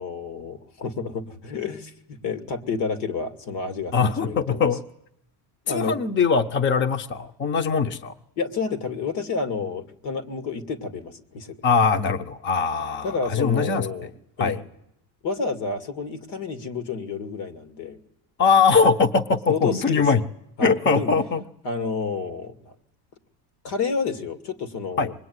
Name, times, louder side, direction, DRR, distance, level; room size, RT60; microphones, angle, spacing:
voice 1, 0.0-4.7 5.7-6.0 8.4-11.6 13.0-14.1 14.4-14.6 15.2-18.0 19.5-20.2 20.6-21.1 21.6-22.7 23.6-25.1, left 4 dB, 75° left, 9 dB, 2.7 m, -30 dB
voice 2, 3.9-4.8 5.7-8.1 11.6-13.9 14.4-14.5 18.4-20.2 20.6-21.4 25.0-25.1, left 5 dB, 25° left, 8 dB, 0.9 m, -21 dB
25.5 x 21.0 x 9.7 m, 0.79 s
cardioid pair, 155°, 41 cm